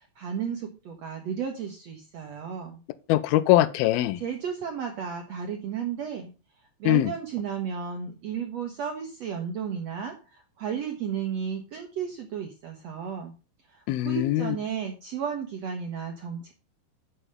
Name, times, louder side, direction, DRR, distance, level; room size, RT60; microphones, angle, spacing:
voice 1, 0.0-2.8 4.2-6.3 6.8-13.3 13.7-16.5, right 7 dB, 75° right, 1.5 m, -33 dB
voice 2, 3.1-4.2 6.9-7.1 13.9-14.6, left 15 dB, 80° left, 2.4 m, -22 dB
8.9 x 7.0 x 5.2 m
omnidirectional pair, 4.7 m